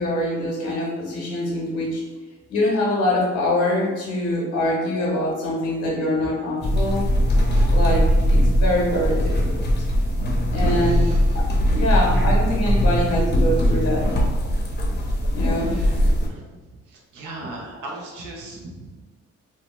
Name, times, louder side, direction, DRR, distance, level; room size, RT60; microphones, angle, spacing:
voice 1, 0.0-2.0 2.5-7.1 7.7-9.6 10.5-11.0 11.3-11.5 11.7-14.1 15.3-15.8, left 1 dB, 75° left, -3 dB, 0.9 m, -24 dB
sound 1, 6.6-16.3, equal, 35° left, 0.6 m, -20 dB
voice 2, 10.7-11.2 11.6-11.9 12.8-12.9 15.5-15.9 16.3-16.4 16.9-18.9, right 2 dB, 80° right, -2 dB, 0.8 m, -38 dB
2.8 x 2.0 x 2.9 m, 1.3 s
cardioid pair, 90°, 30 cm